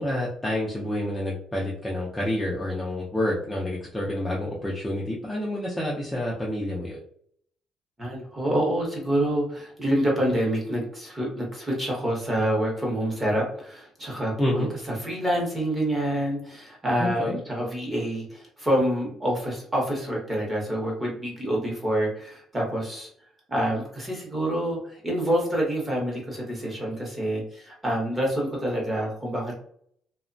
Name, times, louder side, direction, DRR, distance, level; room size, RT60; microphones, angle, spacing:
voice 1, 0.0-7.0 14.4-14.7 17.0-17.4, left 1 dB, 10° left, -5 dB, 0.4 m, -28 dB
voice 2, 8.0-23.1 23.5-29.6, right 1 dB, 10° right, -2 dB, 0.8 m, -27 dB
2.8 x 2.1 x 2.5 m, 0.64 s
cardioid pair, 175°, 0 cm